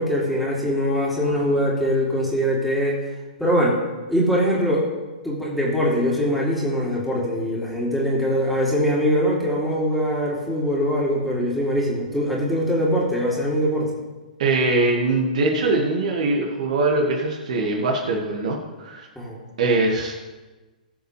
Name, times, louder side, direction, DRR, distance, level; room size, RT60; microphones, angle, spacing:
voice 1, 0.0-3.0 3.4-3.8 4.1-4.8 5.2-14.0 19.2-19.4, equal, ahead, -5 dB, 2.9 m, -22 dB
voice 2, 14.4-19.1 19.6-20.2, right 2 dB, 55° right, 0 dB, 1.9 m, -22 dB
20.0 x 7.1 x 3.3 m, 1.2 s
figure-of-eight pair, 115°, 5 cm